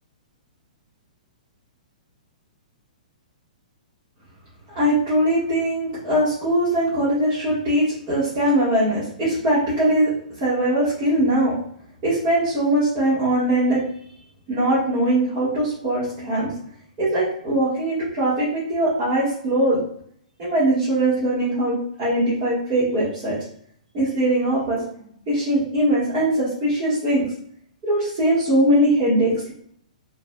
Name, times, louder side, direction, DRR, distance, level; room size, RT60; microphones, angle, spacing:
voice 1, 4.8-10.1 10.4-11.5 12.0-13.8 14.5-16.5 17.0-19.8 20.4-23.4 23.9-24.9 25.3-27.2 27.8-29.5, right 1 dB, 25° right, -10 dB, 1.7 m, -21 dB
5.0 x 3.2 x 2.4 m, 0.65 s
hypercardioid pair, 170°, 4 cm